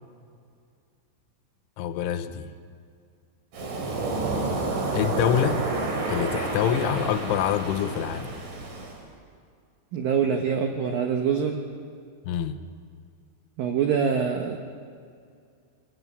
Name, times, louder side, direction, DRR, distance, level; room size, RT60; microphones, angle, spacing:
voice 1, 1.8-2.5 4.9-5.6 6.1-8.3 12.2-12.6, left 9 dB, 85° left, 10 dB, 3.2 m, -26 dB
Waves surf, 3.5-9.0, right 3 dB, 50° right, 3.8 m, -29 dB
voice 2, 9.9-11.6 13.6-14.6, right 7 dB, 75° right, 4 dB, 2.1 m, -25 dB
22.0 x 13.5 x 9.7 m, 2.3 s
omnidirectional pair, 5.7 m